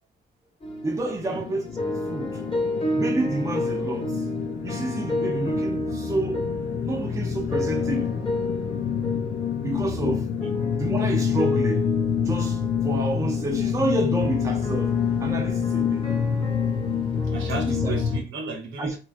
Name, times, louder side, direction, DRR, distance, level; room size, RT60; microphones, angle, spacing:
sound 1, 0.6-18.2, left 1 dB, 25° left, 0.8 m, -31 dB
voice 1, 0.8-1.8 2.1-2.4 2.9-4.2 4.6-6.5 6.8-8.2 9.6-10.3 10.8-12.0 12.3-16.2 17.7-18.0 18.8-19.0, right 2 dB, 15° right, 0.4 m, -29 dB
sound 2, 1.1-18.2, left 7 dB, 45° left, 0.4 m, -27 dB
voice 2, 17.3-19.0, right 4 dB, 70° right, 0.9 m, -33 dB
3.0 x 2.3 x 2.4 m
cardioid pair, 90°, 20 cm